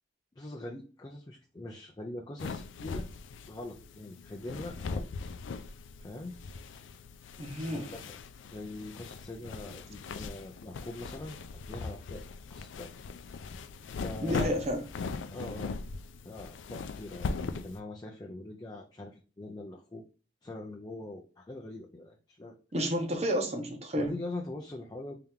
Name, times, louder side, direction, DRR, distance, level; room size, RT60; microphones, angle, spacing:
voice 1, 0.4-3.1 3.5-5.1 6.0-6.4 7.7-8.2 8.5-12.2 12.5-12.9 14.0-14.5 15.3-15.8 16.2-20.0 20.4-22.5 23.9-25.2, left 2 dB, 20° left, 1 dB, 0.4 m, -43 dB
sound 1, 2.4-17.8, left 4 dB, 90° left, 0.4 m, -40 dB
voice 2, 7.4-7.9 14.2-14.9 22.7-24.1, equal, 35° right, 4 dB, 0.9 m, -31 dB
3.4 x 2.9 x 3.6 m, 0.36 s
head